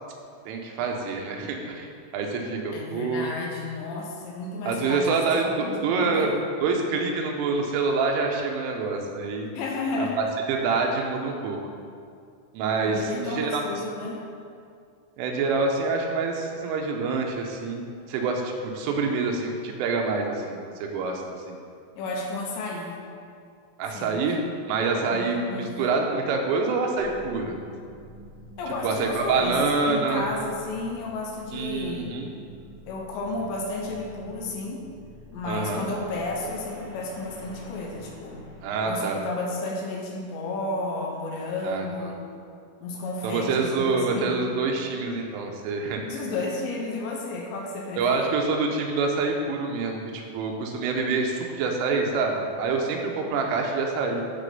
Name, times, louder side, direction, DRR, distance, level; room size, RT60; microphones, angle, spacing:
voice 1, 0.5-1.9 2.1-3.3 4.7-6.3 6.6-9.5 10.0-11.6 12.5-13.6 15.2-21.2 21.5-21.6 23.8-24.4 24.7-27.6 28.8-30.3 31.5-32.3 35.5-35.9 38.6-39.2 41.6-42.1 43.2-46.2 48.0-54.2, right 4 dB, 90° right, 1 dB, 3.5 m, -26 dB
voice 2, 2.7-6.3 9.5-10.3 12.8-14.2 22.0-23.0 23.9-24.2 25.1-25.8 28.6-32.2 32.9-34.8 35.3-38.5 38.9-42.3 42.8-44.3 46.0-48.3, left 2 dB, 75° left, 0 dB, 3.0 m, -32 dB
sound 1, 26.9-38.6, left 1 dB, 40° left, 2.5 m, -46 dB
12.5 x 4.2 x 5.4 m, 2.3 s
omnidirectional pair, 5.6 m